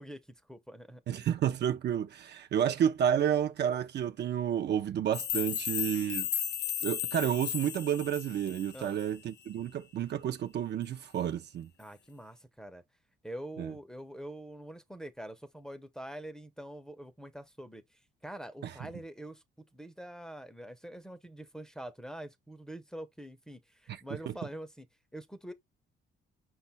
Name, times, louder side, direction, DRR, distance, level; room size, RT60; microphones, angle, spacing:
voice 1, 0.0-1.3 8.7-9.0 11.8-12.8 13.2-24.9 25.1-25.5, right 1 dB, 5° left, 0.6 m, -45 dB
voice 2, 1.1-6.3 6.8-11.7 13.6-13.7 18.6-18.7 23.9-24.0, right 9 dB, 60° right, 0.5 m, -30 dB
sound 1, 5.1-9.1, left 11 dB, 60° left, 0.5 m, -35 dB
5.3 x 2.3 x 4.0 m
cardioid pair, 90°, 20 cm